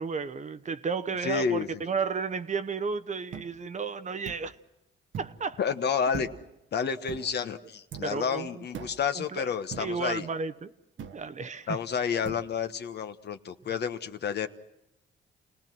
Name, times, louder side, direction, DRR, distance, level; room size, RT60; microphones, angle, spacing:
voice 1, 0.0-4.6 5.2-5.6 8.0-8.6 9.1-9.5 9.8-10.7 11.1-11.8, right 5 dB, 35° right, 0.9 m, -33 dB
voice 2, 1.2-1.7 5.6-6.3 6.7-10.3 11.7-14.5, left 6 dB, 55° left, 1.3 m, -30 dB
sound 1, 3.3-3.5 4.3-4.5 5.1-5.4 6.1-6.5 7.1-7.4 7.9-8.2 8.7-9.1 9.7-10.0 11.0-11.3 12.2-12.5, right 7 dB, 70° right, 1.2 m, -41 dB
29.5 x 18.5 x 6.1 m
cardioid pair, 90°, 20 cm